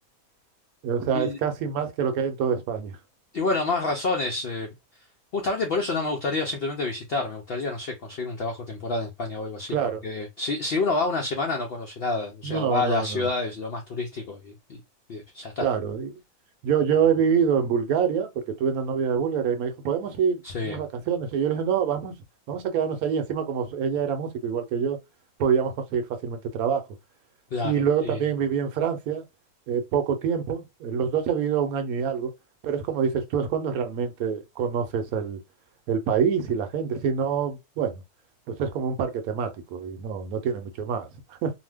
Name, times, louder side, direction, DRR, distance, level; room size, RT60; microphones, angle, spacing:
voice 1, 0.8-3.0 9.7-10.0 12.4-13.3 15.6-16.2 16.6-22.1 22.5-25.0 25.4-26.8 27.6-29.2 29.7-32.3 32.6-35.4 35.9-38.0 38.5-41.5, right 7 dB, 70° right, 1.0 m, -26 dB
voice 2, 3.3-4.7 5.3-9.8 10.0-14.8 15.1-15.6 20.4-20.8 27.5-28.2, left 3 dB, 90° left, 0.5 m, -28 dB
2.7 x 2.1 x 3.3 m
omnidirectional pair, 1.6 m